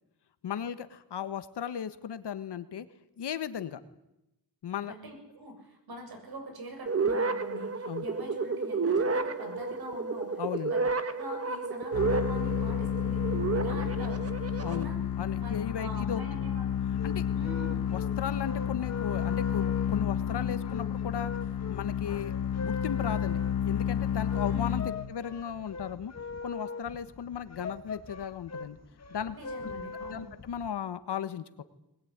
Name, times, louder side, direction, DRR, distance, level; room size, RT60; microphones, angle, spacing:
voice 1, 0.4-2.9 3.2-3.8 4.6-4.9 7.9-8.0 10.4-10.7 14.6-14.9 15.2-16.4 17.0-17.2 17.9-22.3 22.6-23.4 23.6-24.8 25.1-26.1 26.4-28.8 29.1-29.3 29.6-29.7 30.1-31.6, left 8 dB, 75° left, 12 dB, 1.5 m, -36 dB
voice 2, 4.9-10.4 10.7-13.2 13.5-14.3 14.6-15.0 15.3-16.7 17.3-17.9 24.4-24.9 29.3-30.3, right 1 dB, 60° right, 4 dB, 7.6 m, -44 dB
sound 1, 6.9-14.8, right 4 dB, 35° right, 1.6 m, -31 dB
sound 2, 11.9-25.3, left 9 dB, 55° left, 1.2 m, -31 dB
sound 3, 16.7-30.7, left 4 dB, 40° left, 1.6 m, -42 dB
21.5 x 20.5 x 9.7 m, 0.92 s
wide cardioid pair, 115°, 42 cm